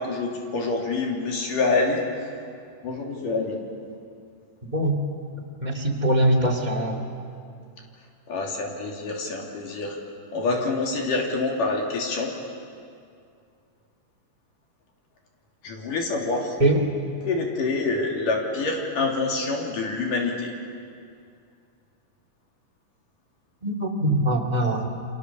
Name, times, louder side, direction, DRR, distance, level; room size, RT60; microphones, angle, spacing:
voice 1, 0.0-2.0 2.8-3.6 8.3-10.0 10.3-12.3 15.6-16.6 17.2-20.5, left 3 dB, 75° left, 0 dB, 4.5 m, -26 dB
voice 2, 5.6-7.1 16.6-16.8 23.6-24.9, right 1 dB, 15° right, 3 dB, 2.3 m, -22 dB
29.5 x 25.5 x 7.1 m, 2.4 s
omnidirectional pair, 3.8 m